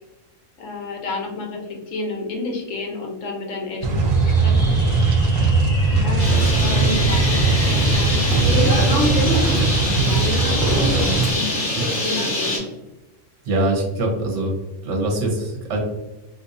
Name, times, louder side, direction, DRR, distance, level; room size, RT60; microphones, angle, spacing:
voice 1, 0.6-5.0 5.9-9.2 10.0-10.4 10.7-12.6, left 3 dB, 85° left, 1 dB, 1.2 m, -31 dB
sound 1, 3.8-11.3, right 3 dB, 85° right, 1.0 m, -19 dB
Fireworks, 4.0-12.1, equal, 5° left, 0.3 m, -32 dB
Bird, 6.2-12.6, left 1 dB, 65° left, 1.6 m, -23 dB
voice 2, 13.4-14.6 14.8-15.8, right 1 dB, 70° right, 0 dB, 1.2 m, -23 dB
3.9 x 2.5 x 2.6 m, 1.0 s
omnidirectional pair, 1.3 m